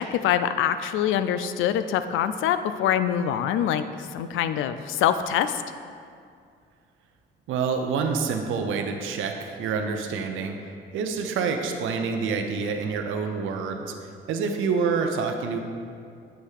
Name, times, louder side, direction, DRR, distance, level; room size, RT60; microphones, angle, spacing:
voice 1, 0.0-3.8 4.1-5.6, left 9 dB, 85° left, 11 dB, 0.4 m, -24 dB
voice 2, 7.5-10.6 10.9-13.9 14.3-15.6, right 5 dB, 85° right, 4 dB, 0.7 m, -27 dB
7.9 x 3.2 x 6.4 m, 2.3 s
cardioid pair, 90°, 20 cm